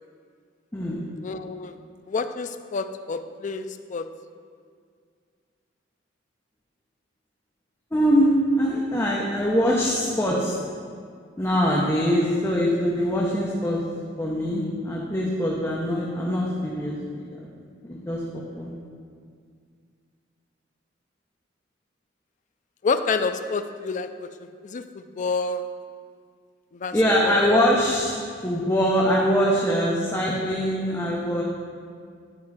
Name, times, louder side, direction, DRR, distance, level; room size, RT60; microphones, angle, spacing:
voice 1, 0.7-1.1 7.9-10.6 11.4-13.8 14.2-17.5 17.9-18.8 26.9-31.4, equal, 15° left, -4 dB, 0.8 m, -23 dB
voice 2, 1.2-1.8 2.1-4.1 22.8-25.8 26.7-27.0 27.2-27.6, left 4 dB, 45° left, 9 dB, 0.4 m, -29 dB
11.0 x 4.6 x 4.8 m, 2.1 s
head